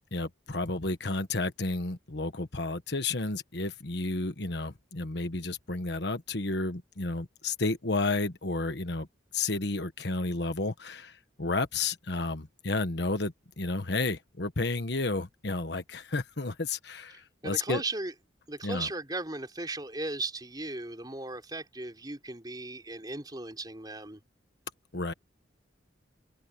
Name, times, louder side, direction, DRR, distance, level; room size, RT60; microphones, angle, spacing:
voice 1, 0.1-9.1 9.3-17.8 18.6-18.9 24.9-25.1, left 3 dB, 60° left, 1.4 m, -31 dB
voice 2, 17.4-18.1 18.5-24.2, right 2 dB, 20° right, 4.4 m, -37 dB
open air
head